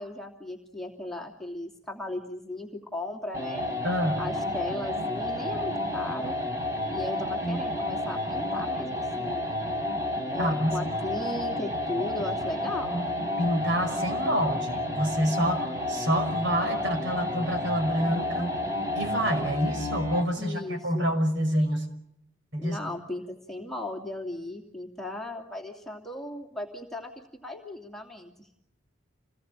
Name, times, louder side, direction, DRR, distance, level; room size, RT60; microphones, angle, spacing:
voice 1, 0.0-3.7 4.2-6.3 6.9-9.5 10.3-13.0 20.4-21.1 22.6-28.5, left 1 dB, ahead, 1 dB, 2.8 m, -37 dB
sound 1, 3.3-20.4, left 1 dB, 15° right, 3.2 m, -31 dB
voice 2, 3.8-4.2 10.4-10.7 13.4-18.5 19.0-21.9 22.5-22.8, equal, 60° right, 6 dB, 5.6 m, -27 dB
28.5 x 20.0 x 9.1 m, 0.77 s
head